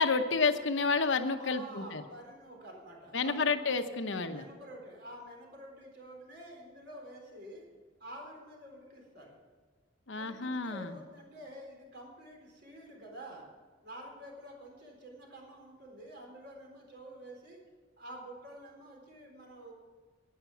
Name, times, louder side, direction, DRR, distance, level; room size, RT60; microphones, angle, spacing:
voice 1, 0.0-2.0 3.1-4.4 10.1-10.9, left 4 dB, 65° left, 8 dB, 0.9 m, -30 dB
voice 2, 1.3-3.5 4.2-7.6 8.0-9.4 10.1-13.5 13.8-17.6 18.0-19.7, right 1 dB, 60° right, -1 dB, 4.2 m, -49 dB
11.5 x 9.5 x 7.2 m, 1.5 s
head